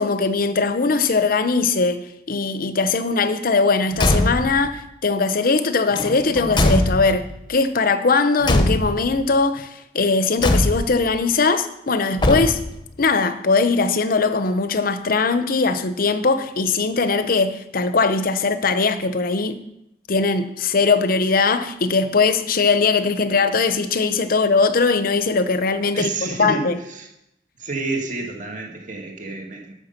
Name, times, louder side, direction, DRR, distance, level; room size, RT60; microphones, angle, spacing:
voice 1, 0.0-12.6 13.0-19.6 20.1-26.8, left 4 dB, 55° left, 0.7 m, -20 dB
Car / Truck / Slam, 3.9-4.7 5.9-7.4 8.4-9.2 10.4-11.1 12.2-12.9, left 1 dB, 25° left, 0.9 m, -21 dB
voice 2, 25.9-27.1 27.6-29.7, right 3 dB, 45° right, 2.0 m, -29 dB
12.0 x 6.7 x 5.8 m
head